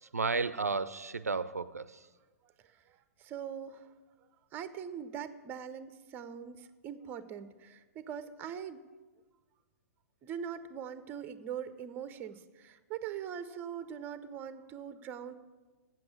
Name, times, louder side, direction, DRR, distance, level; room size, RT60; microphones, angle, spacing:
voice 1, 0.0-2.1, right 4 dB, 75° right, 15 dB, 0.4 m, -33 dB
voice 2, 2.6-3.9 4.5-8.8 10.2-15.3, right 8 dB, 20° right, 12 dB, 0.6 m, -42 dB
7.8 x 7.6 x 8.4 m, 1.3 s
figure-of-eight pair, 115°, 8 cm